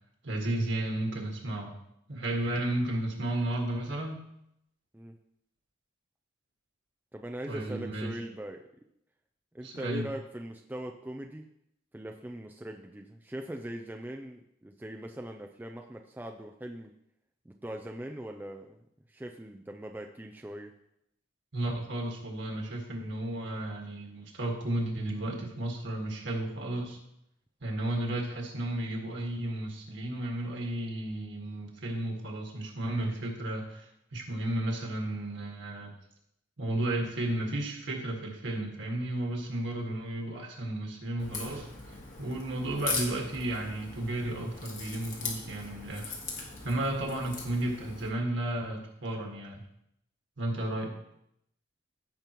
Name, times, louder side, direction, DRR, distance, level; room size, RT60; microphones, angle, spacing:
voice 1, 0.2-1.8 2.1-4.2 7.5-8.1 9.6-10.1 21.5-27.0 27.6-35.9 36.6-49.6 50.4-50.9, right 1 dB, 60° right, 0 dB, 1.7 m, -33 dB
voice 2, 7.1-8.6 9.5-11.5 11.9-16.9 17.5-18.8 19.1-20.8, right 1 dB, 10° right, 3 dB, 0.4 m, -41 dB
Crack, 41.2-48.1, left 4 dB, 40° left, 1.6 m, -39 dB
15.5 x 5.3 x 3.0 m, 0.77 s
head